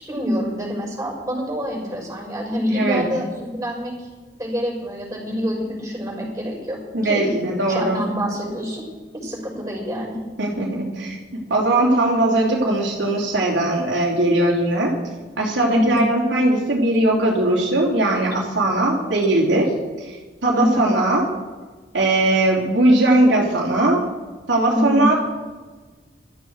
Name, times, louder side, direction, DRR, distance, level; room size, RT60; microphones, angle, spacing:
voice 1, 0.1-4.1 4.3-7.3 7.7-8.8 9.1-10.2 15.7-16.0 19.1-19.3 20.5-20.9 24.7-25.1, equal, 15° right, -2 dB, 6.2 m, -26 dB
voice 2, 2.7-3.0 6.9-8.0 10.4-11.2 11.5-14.9 15.4-19.7 20.4-21.2 21.9-24.0 24.5-25.1, right 1 dB, 90° right, -3 dB, 3.2 m, -19 dB
16.5 x 13.5 x 4.8 m, 1.3 s
head